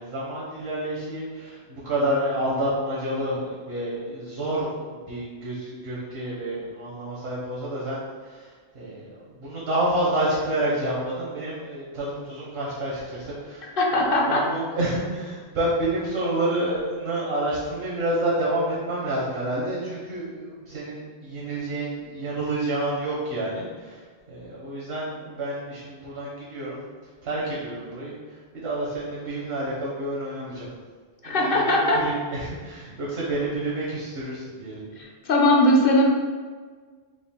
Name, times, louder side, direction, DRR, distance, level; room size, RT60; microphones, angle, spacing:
voice 1, 0.0-26.8 27.2-30.7 31.2-34.8, right 1 dB, 70° right, -7 dB, 1.2 m, -29 dB
voice 2, 13.8-14.5 31.2-32.0 35.0-36.0, left 1 dB, 60° left, -1 dB, 0.8 m, -20 dB
5.0 x 2.4 x 3.6 m, 1.5 s
omnidirectional pair, 1.1 m